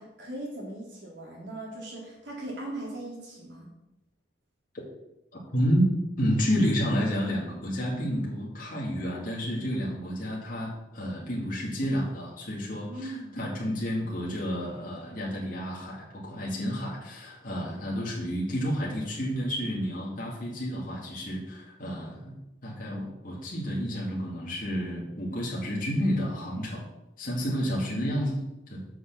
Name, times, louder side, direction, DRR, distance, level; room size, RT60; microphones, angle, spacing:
voice 1, 0.0-3.7 12.9-13.4, right 1 dB, 70° right, -4 dB, 3.9 m, -39 dB
voice 2, 5.5-5.9 6.2-22.3 22.6-26.8 27.2-28.4 28.7-28.8, equal, 45° left, -5 dB, 2.4 m, -30 dB
7.8 x 6.0 x 7.1 m, 0.92 s
head